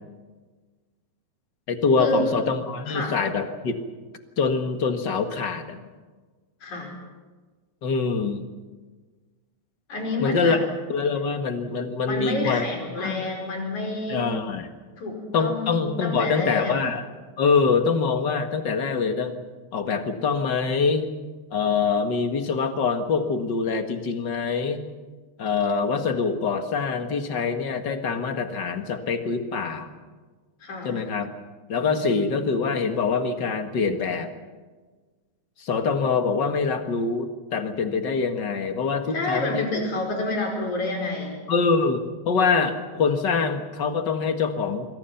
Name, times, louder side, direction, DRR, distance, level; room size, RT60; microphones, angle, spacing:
voice 1, 1.7-3.8 4.4-5.8 7.8-8.5 10.2-10.6 10.9-12.7 13.0-13.4 14.1-14.7 15.3-17.0 17.4-19.4 19.7-21.1 21.5-24.8 25.4-29.9 30.8-31.3 31.7-34.3 35.6-39.7 41.5-44.9, left 5 dB, 40° left, 7 dB, 2.0 m, -24 dB
voice 2, 2.9-3.2 6.6-6.9 9.9-10.6 12.1-14.2 15.0-16.7 30.6-31.0 39.1-41.3, left 2 dB, 65° left, 2 dB, 6.4 m, -28 dB
27.0 x 23.0 x 5.8 m, 1.4 s
omnidirectional pair, 3.6 m